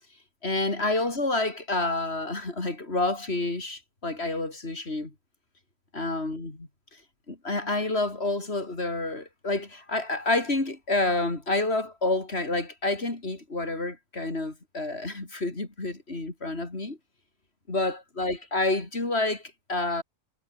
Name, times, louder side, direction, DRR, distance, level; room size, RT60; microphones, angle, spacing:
voice 1, 0.4-5.1 5.9-6.7 7.3-17.0 17.7-20.0, left 2 dB, 60° left, 4.1 m, -29 dB
omnidirectional pair, 1.2 m